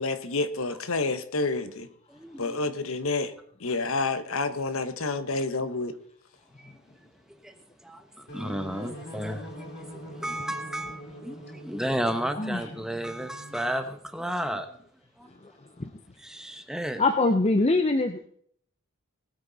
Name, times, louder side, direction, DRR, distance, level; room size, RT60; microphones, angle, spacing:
voice 1, 0.0-1.9 2.4-3.3 3.6-6.0, left 3 dB, 75° left, 12 dB, 1.1 m, -29 dB
voice 2, 2.1-2.6 6.6-6.7 7.4-7.5 7.8-14.7 15.2-15.3 16.2-17.0, equal, 5° right, 7 dB, 1.1 m, -33 dB
sound 1, 8.3-13.8, equal, 50° left, 3.1 m, -43 dB
voice 3, 12.3-12.7 15.4-15.5 15.8-15.9 17.0-18.3, left 2 dB, 30° left, 7 dB, 0.7 m, -24 dB
19.5 x 9.0 x 4.1 m, 0.63 s
head